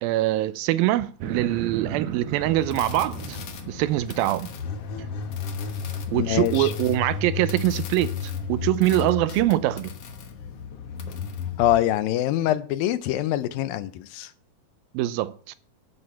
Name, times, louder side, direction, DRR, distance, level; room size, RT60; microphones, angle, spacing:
voice 1, 0.0-3.4 3.7-4.5 6.1-9.9 14.9-15.6, right 15 dB, 90° right, 2.5 m, -24 dB
sound 1, 1.2-4.3, right 9 dB, 70° right, 1.8 m, -35 dB
sound 2, 2.4-11.8, left 6 dB, 55° left, 1.8 m, -33 dB
voice 2, 6.1-6.7 11.6-14.3, left 13 dB, 85° left, 2.5 m, -24 dB
11.0 x 9.0 x 5.6 m
omnidirectional pair, 4.1 m